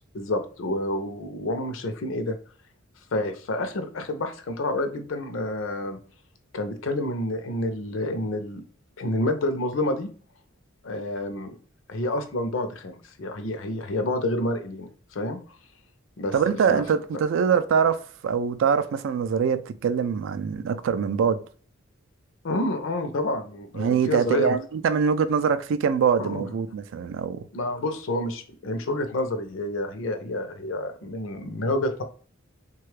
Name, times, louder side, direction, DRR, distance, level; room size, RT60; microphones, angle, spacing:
voice 1, 0.1-2.4 3.1-6.0 6.5-8.6 9.0-10.1 10.8-11.6 11.9-15.4 16.2-16.3 16.7-16.8 22.4-24.6 26.2-26.5 27.5-32.0, left 1 dB, 70° left, 0.5 m, -29 dB
voice 2, 16.3-18.0 18.2-21.4 23.8-27.4, right 6 dB, 65° right, 0.3 m, -23 dB
3.2 x 2.3 x 3.2 m
head